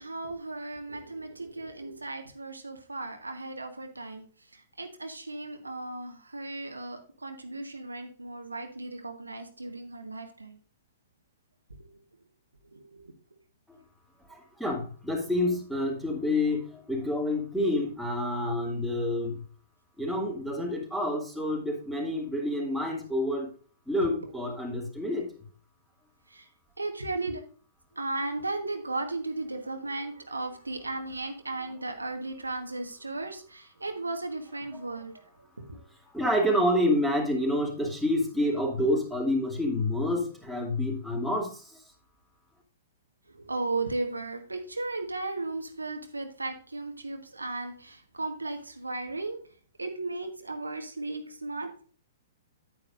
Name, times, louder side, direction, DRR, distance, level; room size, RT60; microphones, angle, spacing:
voice 1, 0.0-4.3 4.5-10.6 11.8-11.9 12.7-13.1 24.0-24.1 26.3-26.5 26.8-27.4 27.9-35.8 43.3-49.4 49.8-51.8, right 2 dB, 85° right, 5 dB, 1.3 m, -36 dB
voice 2, 14.3-19.4 20.0-23.5 23.9-25.3 36.0-41.8, left 1 dB, ahead, -1 dB, 2.7 m, -28 dB
9.6 x 9.2 x 2.5 m, 0.42 s
figure-of-eight pair, 115°, 0 cm